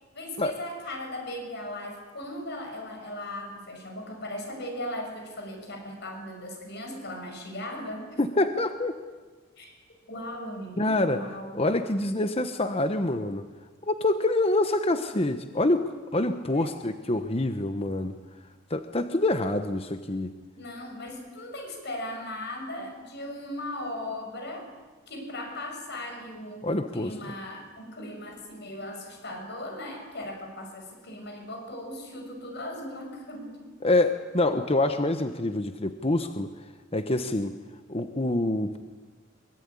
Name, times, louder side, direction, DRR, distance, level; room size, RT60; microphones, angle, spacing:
voice 1, 0.1-8.2 9.6-9.8 10.1-11.5 16.5-16.8 20.6-24.7 25.1-33.7, left 1 dB, 55° left, 3 dB, 6.5 m, -38 dB
voice 2, 8.2-8.9 10.8-11.2 11.5-13.4 13.8-15.8 16.1-18.2 18.7-20.3 26.6-27.1 33.8-36.5 36.9-37.6 37.9-38.8, left 2 dB, 30° left, 8 dB, 1.1 m, -26 dB
24.0 x 23.0 x 9.8 m, 1.3 s
head